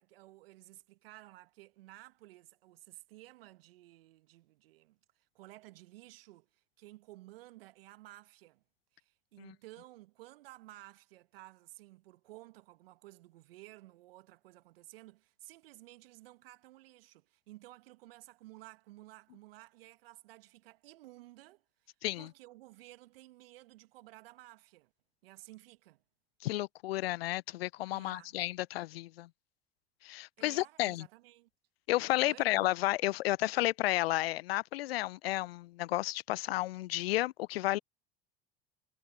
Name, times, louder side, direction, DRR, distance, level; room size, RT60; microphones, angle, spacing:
voice 1, 0.0-8.6 8.9-24.9 25.2-26.0 27.9-28.4 30.4-31.5 32.2-32.5, right 18 dB, 75° right, 1.9 m, -55 dB
voice 2, 26.4-29.3 30.0-31.1 31.9-37.8, left 17 dB, 80° left, 0.5 m, -32 dB
hypercardioid pair, 65°, 30 cm